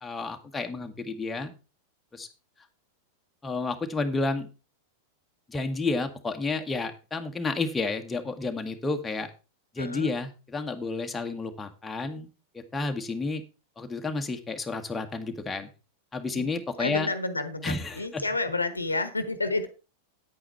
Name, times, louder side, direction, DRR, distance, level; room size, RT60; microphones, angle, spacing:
voice 1, 0.0-1.5 2.1-2.3 3.4-4.5 5.5-9.3 9.7-12.3 12.5-13.4 13.8-15.7 16.1-17.1 17.6-18.2, left 3 dB, 10° left, 1.5 m, -31 dB
voice 2, 9.8-10.1 16.3-19.7, left 2 dB, 80° left, 1.2 m, -30 dB
9.7 x 8.6 x 4.6 m
figure-of-eight pair, 90°, 0 cm